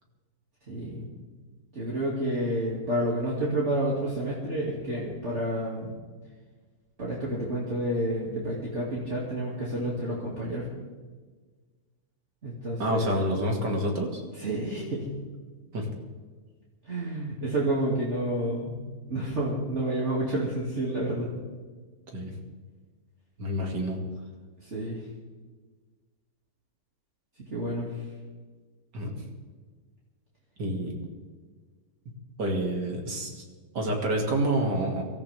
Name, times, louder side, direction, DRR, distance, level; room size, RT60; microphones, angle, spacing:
voice 1, 0.7-1.1 1.7-5.9 7.0-10.7 12.4-13.2 14.4-15.1 16.8-18.8 19.1-21.3 24.6-25.0 27.5-27.9, right 1 dB, 40° right, -6 dB, 2.8 m, -29 dB
voice 2, 12.8-14.2 15.7-15.9 22.1-22.3 23.4-24.0 28.9-29.2 30.6-30.9 32.1-32.2 32.4-33.4 33.7-35.1, right 1 dB, 85° right, 0 dB, 3.0 m, -28 dB
24.0 x 14.0 x 3.6 m, 1.4 s
omnidirectional pair, 1.8 m